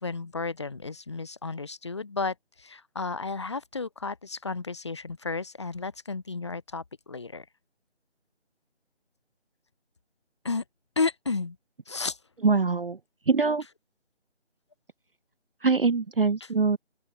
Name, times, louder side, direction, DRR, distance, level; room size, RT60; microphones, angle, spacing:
voice 1, 0.0-7.4 10.4-10.6 10.9-11.6 11.9-12.2, left 4 dB, 25° left, 1.5 m, -32 dB
voice 2, 12.4-13.0 13.3-13.6 15.6-16.8, right 4 dB, 55° right, 0.5 m, -23 dB
open air
figure-of-eight pair, 165°, 34 cm